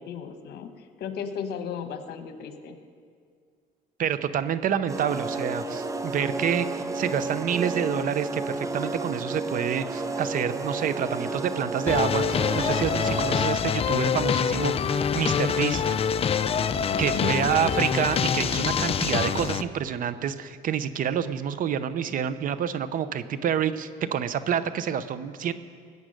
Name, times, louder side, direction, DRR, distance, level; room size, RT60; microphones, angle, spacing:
voice 1, 0.0-2.8 17.1-17.5, left 7 dB, 75° left, 8 dB, 1.2 m, -35 dB
voice 2, 4.0-15.8 17.0-25.5, right 8 dB, 55° right, 13 dB, 0.7 m, -28 dB
sound 1, 4.9-13.6, right 2 dB, 20° right, 0.8 m, -32 dB
sound 2, 11.9-19.6, left 7 dB, 35° left, 0.5 m, -25 dB
20.0 x 8.6 x 6.5 m, 2.1 s
cardioid pair, 110°, 17 cm